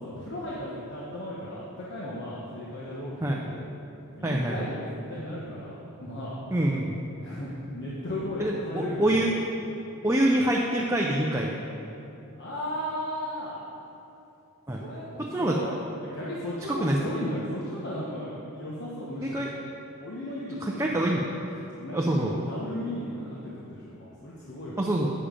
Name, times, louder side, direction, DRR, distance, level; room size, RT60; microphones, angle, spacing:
voice 1, 0.0-3.6 4.2-6.4 7.2-9.3 12.4-13.6 14.7-15.7 16.0-19.5 20.0-21.1 21.7-24.8, left 1 dB, 50° left, -7 dB, 1.1 m, -35 dB
voice 2, 4.2-4.6 6.5-7.0 8.4-9.3 10.0-11.5 14.7-14.8 15.2-15.5 16.8-17.0 19.2-19.5 20.6-21.2 21.9-22.3 24.8-25.1, right 1 dB, 15° right, -1 dB, 0.5 m, -25 dB
8.7 x 6.9 x 5.1 m, 2.9 s
head